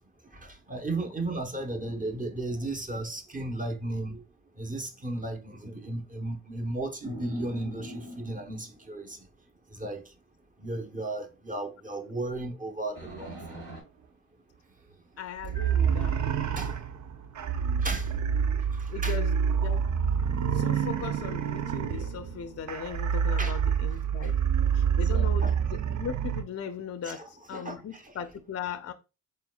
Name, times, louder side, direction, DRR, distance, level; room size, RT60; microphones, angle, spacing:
voice 1, 0.3-4.2 4.6-9.2 9.7-10.0 10.6-13.6 15.5-15.7 16.6-16.7 17.8-18.1 19.0-19.2 23.4-23.6 25.0-25.6 27.0-28.1, right 2 dB, 20° right, 1.1 m, -35 dB
sound 1, 7.0-8.9 13.0-13.8, equal, 85° right, 2.4 m, -42 dB
voice 2, 15.2-16.2 18.9-19.9 20.5-24.4 24.7-28.9, left 7 dB, 40° left, 0.6 m, -38 dB
sound 2, 15.4-26.4, right 7 dB, 50° right, 0.6 m, -27 dB
4.3 x 3.7 x 2.4 m
hypercardioid pair, 45°, 36 cm